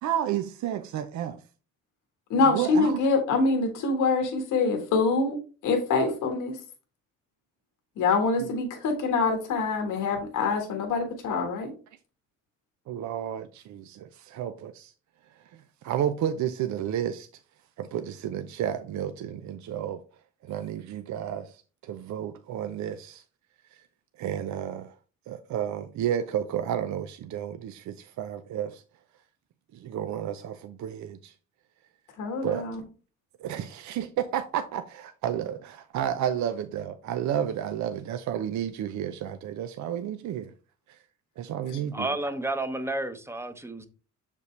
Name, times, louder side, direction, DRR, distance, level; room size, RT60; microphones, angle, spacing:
voice 1, 0.0-1.4 2.4-3.0 8.4-8.5 12.9-14.9 15.8-17.3 17.8-20.0 20.5-23.2 23.7-23.8 24.2-24.9 25.3-28.8 29.7-31.3 32.4-32.6 33.4-40.5 40.9-41.0 41.4-42.1, right 10 dB, 70° right, 0.6 m, -31 dB
voice 2, 2.3-5.3 5.6-6.6 8.0-11.7 32.2-32.8, left 4 dB, 85° left, 1.6 m, -25 dB
voice 3, 41.9-43.9, right 2 dB, 10° right, 0.8 m, -31 dB
6.6 x 5.3 x 3.2 m
cardioid pair, 90°, 30 cm